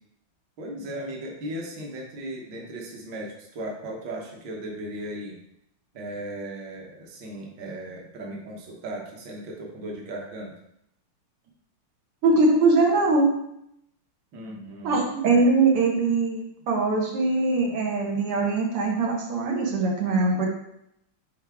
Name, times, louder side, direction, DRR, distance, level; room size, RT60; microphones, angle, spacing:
voice 1, 0.6-5.4 5.9-10.5 14.3-15.0, right 1 dB, 60° right, -1 dB, 1.8 m, -36 dB
voice 2, 12.2-13.3 14.8-20.5, right 3 dB, 90° right, -1 dB, 2.2 m, -22 dB
9.8 x 3.5 x 3.5 m, 0.77 s
omnidirectional pair, 2.4 m